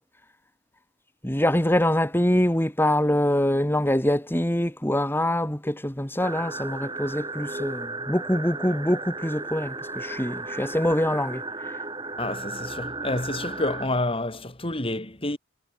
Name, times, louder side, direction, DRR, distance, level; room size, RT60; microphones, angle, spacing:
voice 1, 1.2-11.4, left 1 dB, 10° left, 3.0 m, -24 dB
sound 1, 6.2-13.9, right 3 dB, 20° right, 7.5 m, -34 dB
voice 2, 12.2-15.4, left 2 dB, 30° left, 5.1 m, -29 dB
head